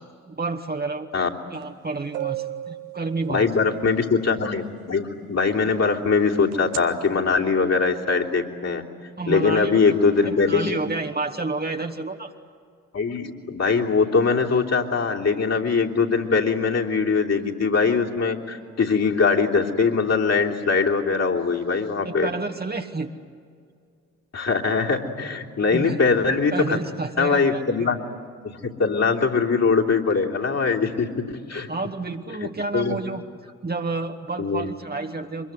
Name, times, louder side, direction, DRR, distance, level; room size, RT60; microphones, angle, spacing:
voice 1, 0.3-1.1 1.5-3.5 9.2-12.3 22.1-23.1 25.7-26.0 26.5-27.9 31.7-35.5, right 3 dB, 20° right, 4 dB, 1.8 m, -30 dB
sound 1, 1.6-1.7 2.1-3.9 6.5-6.8, right 14 dB, 65° right, 1.4 m, -33 dB
voice 2, 3.3-8.8 9.3-10.8 12.9-22.3 24.3-26.8 27.2-28.0 28.5-31.7 32.4-32.5 32.7-33.0 34.4-34.7, left 4 dB, 35° left, -1 dB, 3.2 m, -22 dB
25.0 x 22.0 x 9.5 m, 2.2 s
figure-of-eight pair, 40°, 43 cm